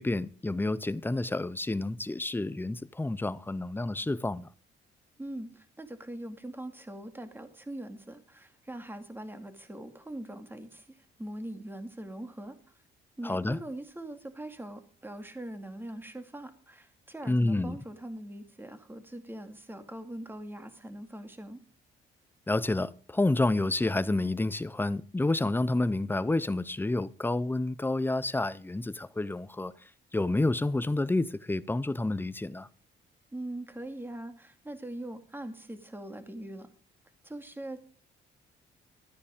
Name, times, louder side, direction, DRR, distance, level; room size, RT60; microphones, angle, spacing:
voice 1, 0.0-4.5 13.2-13.6 17.3-17.8 22.5-29.7 30.1-32.7, left 2 dB, 10° left, 0.6 m, -29 dB
voice 2, 5.2-12.6 13.2-21.6 33.3-36.7 37.2-37.8, right 1 dB, 10° right, 2.1 m, -42 dB
13.0 x 9.7 x 5.1 m
cardioid pair, 90°, 20 cm